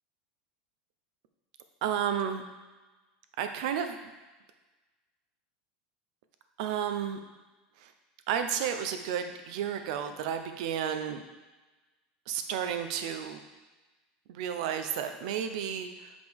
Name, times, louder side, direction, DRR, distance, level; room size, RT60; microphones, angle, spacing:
voice 1, 1.8-2.4 3.4-4.0 6.6-7.2 7.8-7.9 8.3-11.2 12.3-13.4 14.3-16.1, right 8 dB, 65° right, 7 dB, 0.6 m, -32 dB
6.1 x 5.0 x 3.5 m, 1.2 s
supercardioid pair, 150°, 4 cm